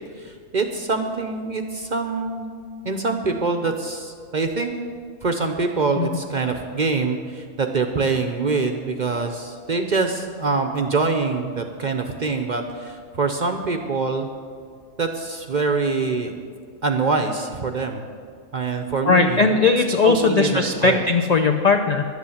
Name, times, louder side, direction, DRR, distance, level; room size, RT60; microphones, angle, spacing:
voice 1, 0.2-2.5 2.8-4.7 5.2-14.3 15.0-16.3 16.8-18.0 18.5-19.5 20.0-21.0, right 4 dB, 45° right, 5 dB, 0.6 m, -24 dB
voice 2, 19.1-22.1, left 4 dB, 60° left, 4 dB, 0.4 m, -18 dB
11.5 x 8.2 x 7.0 m, 2.1 s
omnidirectional pair, 1.4 m